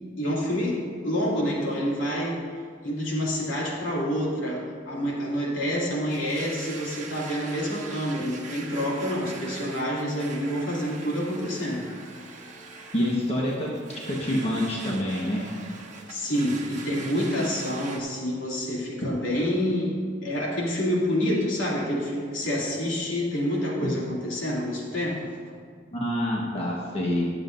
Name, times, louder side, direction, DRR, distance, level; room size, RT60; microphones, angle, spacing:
voice 1, 0.2-2.4 2.8-11.9 16.1-25.3, equal, 75° left, -4 dB, 2.8 m, -28 dB
Domestic sounds home sounds, 6.1-18.0, right 4 dB, 40° right, 1.3 m, -42 dB
voice 2, 12.9-13.7 14.1-15.4 23.8-23.9 25.9-27.3, left 1 dB, 30° left, -4 dB, 1.4 m, -26 dB
21.5 x 7.5 x 2.7 m, 2.1 s
head